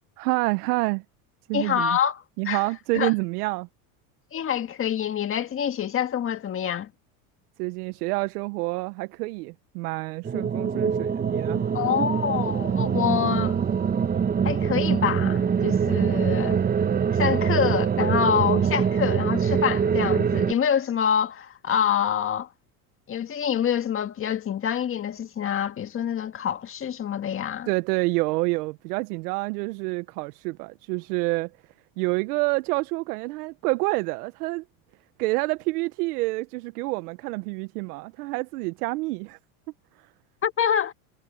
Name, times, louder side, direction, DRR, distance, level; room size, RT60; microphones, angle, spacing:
voice 1, 0.2-1.0 1.5-2.0 2.4-3.7 7.6-11.6 12.0-12.1 27.7-31.5 32.0-34.6 35.2-39.4, right 24 dB, 75° right, 0.9 m, -28 dB
voice 2, 1.5-2.6 2.9-3.1 4.3-6.9 11.7-13.6 14.4-16.6 17.1-22.5 23.1-27.7 40.4-40.9, left 8 dB, 30° left, 1.7 m, -26 dB
sound 1, 10.2-20.5, right 7 dB, 20° right, 1.1 m, -24 dB
supercardioid pair, 130°, 45 cm